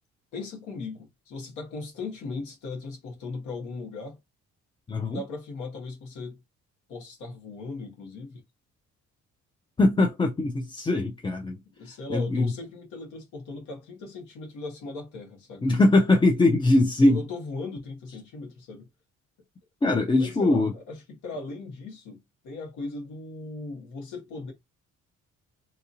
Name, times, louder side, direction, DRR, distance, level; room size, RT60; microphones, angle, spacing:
voice 1, 0.3-4.2 5.0-6.4 6.9-8.4 11.8-15.7 17.0-18.9 19.9-24.5, left 3 dB, 90° left, 1.3 m, -38 dB
voice 2, 4.9-5.2 9.8-11.6 12.1-12.5 15.6-17.2 19.8-20.7, left 2 dB, 15° left, 0.4 m, -21 dB
2.8 x 2.6 x 2.6 m
cardioid pair, 90°, 30 cm